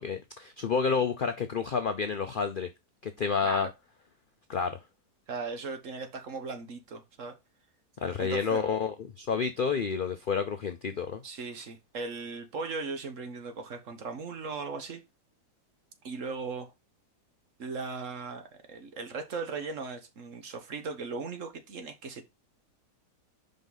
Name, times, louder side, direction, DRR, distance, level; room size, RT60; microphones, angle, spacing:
voice 1, 0.0-2.7 3.0-3.7 4.5-4.8 8.0-11.2, left 5 dB, 70° left, 0.5 m, -29 dB
voice 2, 5.3-7.4 8.2-8.6 11.2-15.0 16.0-16.7 17.6-22.2, right 4 dB, 55° right, 1.4 m, -38 dB
5.3 x 5.3 x 3.9 m
omnidirectional pair, 1.8 m